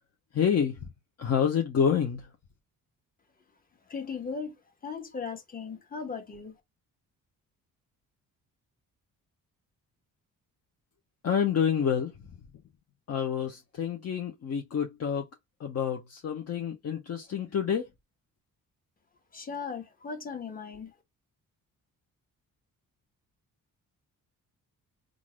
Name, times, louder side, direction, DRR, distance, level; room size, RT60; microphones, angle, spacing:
voice 1, 0.3-0.8 1.2-2.3 11.2-12.1 13.1-15.2 15.6-17.9, left 7 dB, 45° left, 0.8 m, -28 dB
voice 2, 3.9-4.6 4.8-6.5 19.3-20.9, left 5 dB, 25° left, 1.3 m, -37 dB
3.8 x 2.5 x 3.0 m
cardioid pair, 115°, 34 cm